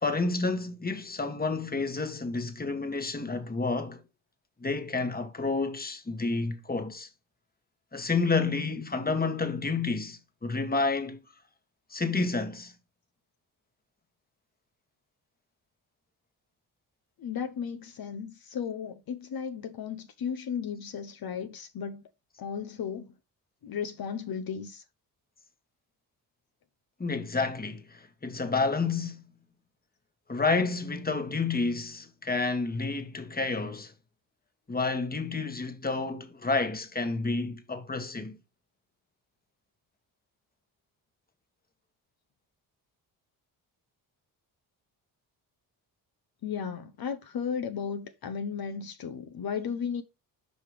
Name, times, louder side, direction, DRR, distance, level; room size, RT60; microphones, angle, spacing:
voice 1, 0.0-4.0 4.6-7.1 7.9-11.2 11.9-12.7 27.0-29.2 30.3-33.9 34.7-38.4, left 3 dB, 20° left, 1.6 m, -30 dB
voice 2, 17.2-22.1 22.4-23.1 23.6-24.8 46.4-50.0, left 7 dB, 55° left, 1.0 m, -35 dB
5.5 x 5.1 x 4.9 m
supercardioid pair, 65°, 43 cm